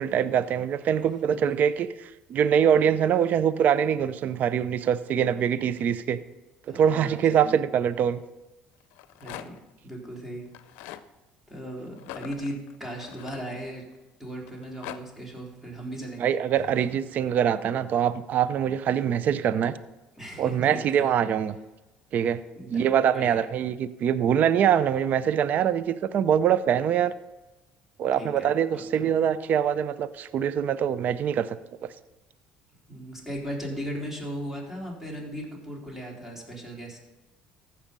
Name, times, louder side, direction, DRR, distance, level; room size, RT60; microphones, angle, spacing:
voice 1, 0.0-6.2 6.7-8.2 16.2-19.7 20.4-21.6 22.1-22.4 22.7-27.1 28.0-31.6 31.8-31.9, right 8 dB, 55° right, 15 dB, 0.6 m, -24 dB
voice 2, 6.7-7.6 9.2-9.6 9.8-10.5 11.5-13.8 14.2-16.3 16.6-16.7 20.2-21.1 22.6-22.8 23.1-23.5 28.1-29.1 32.9-37.0, right 1 dB, 10° right, -2 dB, 3.9 m, -37 dB
Rattle, 8.8-9.7 10.5-11.1 12.0-13.9 14.5-15.0, left 13 dB, 80° left, 0.6 m, -42 dB
15.0 x 5.8 x 5.3 m, 1.1 s
supercardioid pair, 90°, 3 cm